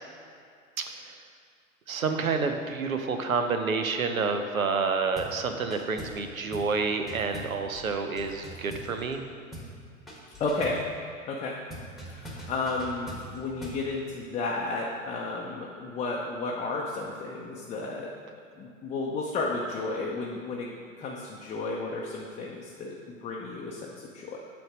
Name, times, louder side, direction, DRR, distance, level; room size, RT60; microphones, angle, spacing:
voice 1, 0.8-1.1 1.9-9.2, right 4 dB, 85° right, 6 dB, 0.7 m, -29 dB
sound 1, 5.2-5.4 5.7-6.2 6.5-6.8 7.1-9.2 9.5-9.8 10.1-10.9 11.7-13.9, equal, ahead, 1.3 m, -42 dB
voice 2, 10.4-10.8 11.3-11.5 12.1-18.1 18.6-20.7 21.0-24.4, left 3 dB, 20° left, -2 dB, 0.6 m, -33 dB
7.7 x 3.5 x 6.0 m, 2.3 s
figure-of-eight pair, 90°, 40 cm